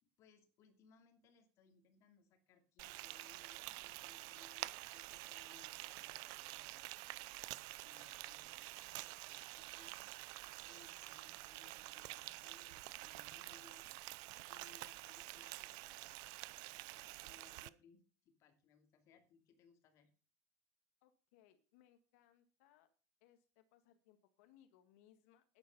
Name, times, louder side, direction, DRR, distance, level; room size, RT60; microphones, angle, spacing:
voice 1, 0.0-7.0 7.8-13.9 14.5-16.0 16.7-20.1, left 6 dB, 40° left, 6 dB, 2.7 m, -68 dB
Frying (food), 2.8-17.7, right 21 dB, 55° right, 0.6 m, -49 dB
voice 2, 21.0-22.9 23.2-25.6, left 11 dB, 80° left, 8 dB, 1.8 m, -69 dB
11.5 x 10.0 x 5.5 m, 0.36 s
cardioid pair, 165°, 8 cm